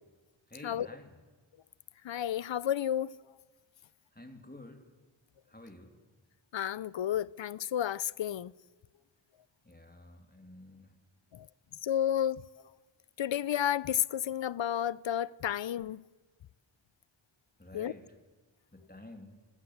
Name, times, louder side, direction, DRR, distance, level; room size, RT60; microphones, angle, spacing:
voice 1, 0.5-1.1 4.1-4.8 5.5-6.0 9.6-11.0 17.6-18.1 18.7-19.4, left 1 dB, 20° left, 2.8 m, -50 dB
voice 2, 2.0-3.2 6.5-8.5 11.3-11.5 11.8-12.4 13.2-16.0 17.7-17.9, left 10 dB, 65° left, 0.6 m, -31 dB
19.0 x 17.0 x 8.0 m
wide cardioid pair, 65°, 48 cm